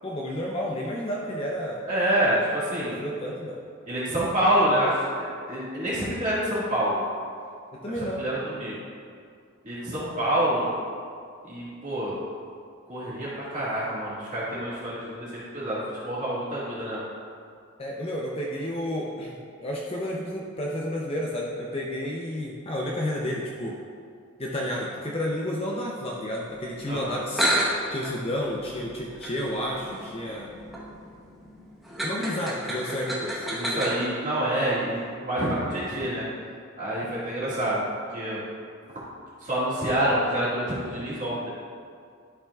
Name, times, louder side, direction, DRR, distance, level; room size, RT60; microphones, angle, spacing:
voice 1, 0.0-1.8 2.9-3.6 7.7-8.2 17.8-23.8 24.4-27.5 27.9-30.5 32.0-33.9, equal, 25° left, -3 dB, 0.6 m, -31 dB
voice 2, 1.9-3.0 3.9-7.0 8.0-8.8 9.6-10.7 11.4-12.2 12.9-17.0 26.9-27.1 33.6-36.2 36.8-37.8 38.1-38.4 39.4-41.5, right 1 dB, 35° right, -9 dB, 1.8 m, -27 dB
sound 1, 27.3-34.1, right 1 dB, ahead, 1.0 m, -31 dB
12.0 x 5.7 x 2.3 m, 2.3 s
head